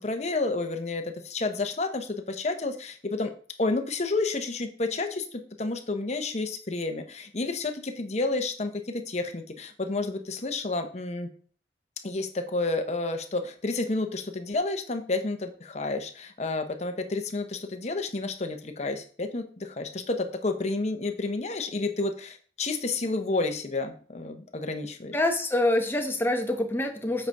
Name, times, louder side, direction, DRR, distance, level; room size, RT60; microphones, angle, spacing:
voice 1, 0.0-3.3 3.6-11.3 12.0-25.1, left 3 dB, 40° left, 6 dB, 0.9 m, -30 dB
voice 2, 25.1-27.3, left 1 dB, 15° left, 4 dB, 1.0 m, -26 dB
8.0 x 5.4 x 3.5 m, 0.43 s
head